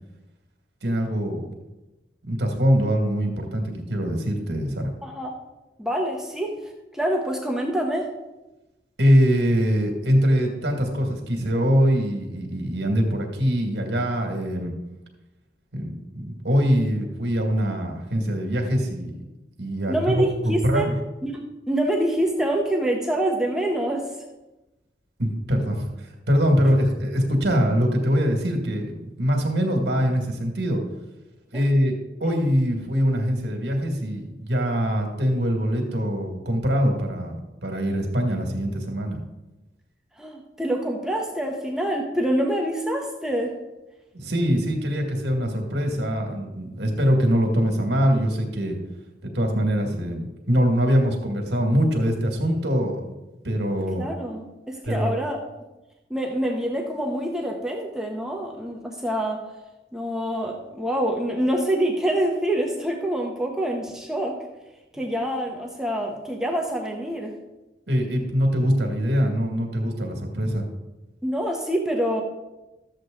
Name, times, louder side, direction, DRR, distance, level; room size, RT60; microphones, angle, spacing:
voice 1, 0.8-1.5 2.3-4.9 9.0-14.7 15.7-19.2 19.6-20.9 25.2-30.8 31.5-31.9 32.2-39.2 44.1-48.8 49.2-53.1 53.4-54.1 54.9-55.1 67.9-70.7, equal, 70° right, 3 dB, 2.0 m, -23 dB
voice 2, 5.0-5.3 5.8-6.6 6.9-8.1 19.9-20.9 21.2-24.1 31.5-31.7 32.3-32.4 40.2-43.5 54.0-55.4 56.1-59.4 59.9-64.4 64.9-67.3 71.2-72.2, right 1 dB, 5° right, 0 dB, 1.0 m, -26 dB
13.0 x 7.8 x 3.8 m, 1.0 s
head